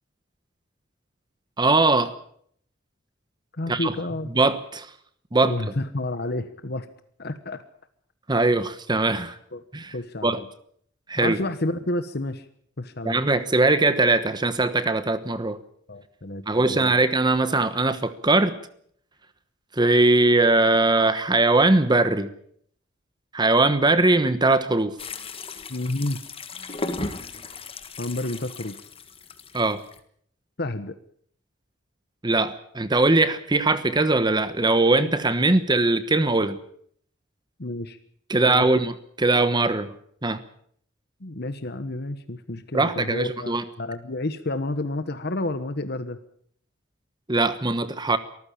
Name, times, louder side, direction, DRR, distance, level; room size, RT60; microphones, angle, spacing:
voice 1, 1.6-2.1 3.7-3.9 4.3-4.9 5.3-5.5 8.3-9.4 9.7-9.9 10.2-10.4 11.1-11.4 13.0-15.6 16.5-18.5 19.7-22.3 23.3-25.0 29.5-29.8 32.2-36.6 38.3-39.9 40.2-40.4 42.7-43.6 47.3-48.2, right 2 dB, 20° right, 12 dB, 1.1 m, -21 dB
voice 2, 3.5-4.3 5.4-6.9 7.2-7.6 9.5-9.6 9.9-10.5 11.2-12.4 12.8-13.2 15.9-16.4 16.7-16.9 25.7-26.2 28.0-28.7 30.6-31.0 37.6-38.0 38.4-38.7 41.2-46.2, left 2 dB, 55° left, 11 dB, 1.3 m, -30 dB
sound 1, 25.0-30.0, left 3 dB, 30° left, 1.8 m, -36 dB
24.5 x 14.5 x 8.6 m, 0.65 s
head